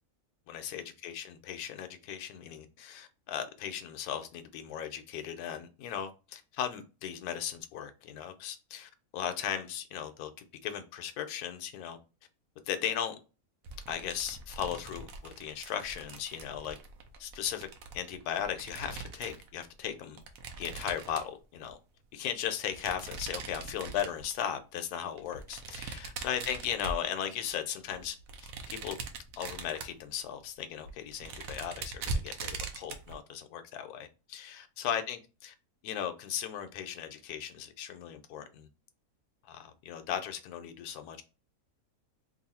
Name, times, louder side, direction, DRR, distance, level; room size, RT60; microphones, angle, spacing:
voice 1, 0.5-10.3 10.6-12.0 12.7-13.2 13.9-16.8 17.2-17.7 17.9-20.2 20.6-21.8 22.1-28.2 28.7-29.0 29.4-35.5 35.8-38.7 39.5-41.2, left 9 dB, 75° left, 1.1 m, -37 dB
sound 1, 13.6-19.5 20.2-21.7 22.7-24.4 25.2-27.5 27.9-30.1 30.5-30.6 30.8-33.2, right 3 dB, 70° right, 1.0 m, -41 dB
3.0 x 2.6 x 4.1 m
omnidirectional pair, 1.7 m